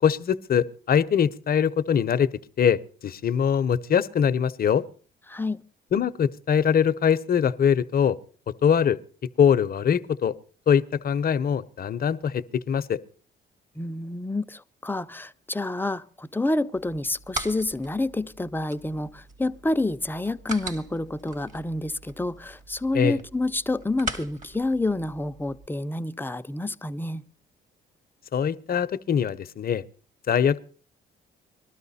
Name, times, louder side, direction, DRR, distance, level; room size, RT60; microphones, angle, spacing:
voice 1, 0.0-2.3 2.6-4.8 5.9-8.2 8.6-9.0 9.4-10.3 10.7-13.0 22.9-23.2 28.3-29.8 30.3-30.6, left 8 dB, 50° left, 0.7 m, -22 dB
voice 2, 5.3-5.6 13.8-27.3, left 2 dB, 10° left, 0.6 m, -28 dB
sound 1, 16.7-25.7, right 3 dB, 40° right, 2.0 m, -40 dB
20.5 x 13.0 x 4.2 m
cardioid pair, 90°, 20 cm